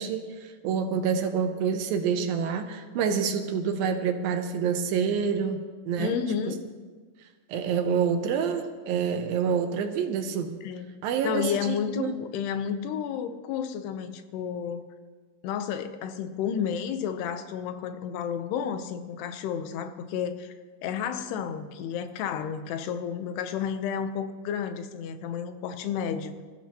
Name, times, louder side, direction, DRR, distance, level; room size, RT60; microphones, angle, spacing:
voice 1, 0.0-6.2 6.5-6.6 7.5-10.6 11.0-12.2, right 6 dB, 75° right, 6 dB, 2.4 m, -27 dB
voice 2, 6.0-6.7 10.6-10.9 11.2-14.9 15.4-20.5 20.8-26.3, left 8 dB, 90° left, 9 dB, 2.9 m, -31 dB
26.0 x 14.0 x 2.9 m, 1.5 s
omnidirectional pair, 4.6 m